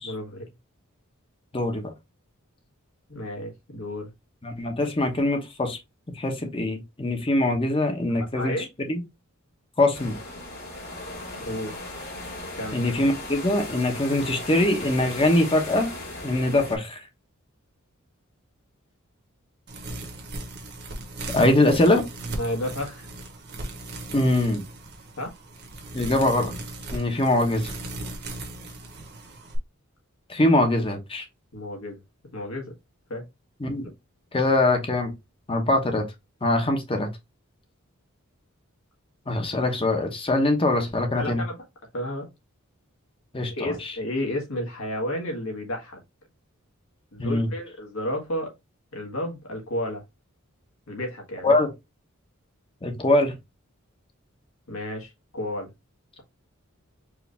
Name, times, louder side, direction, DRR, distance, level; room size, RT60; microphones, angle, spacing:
voice 1, 0.0-0.4 3.1-4.1 8.1-8.7 11.4-11.7 12.5-12.8 22.2-23.1 23.6-23.8 25.2-25.3 31.5-32.0 32.3-32.7 33.1-33.2 41.1-41.6 41.9-42.3 43.5-46.0 47.1-48.5 48.9-50.0 50.9-51.5 54.7-55.7, left 1 dB, 70° left, 1.7 m, -32 dB
voice 2, 1.5-1.9 4.4-5.8 6.2-9.0 9.8-10.1 12.7-15.9 16.2-17.0 21.3-22.0 24.1-24.6 25.9-26.5 26.9-27.7 30.3-31.2 33.6-33.9 34.3-35.1 35.5-36.0 36.4-37.1 39.3-41.4 43.3-43.9 47.2-47.5 51.4-51.7 52.8-53.3, left 1 dB, 25° left, 1.0 m, -23 dB
sound 1, 9.9-16.8, left 2 dB, 50° left, 2.1 m, -37 dB
sound 2, 19.7-29.6, right 1 dB, 50° right, 1.2 m, -37 dB
4.8 x 2.6 x 3.4 m
head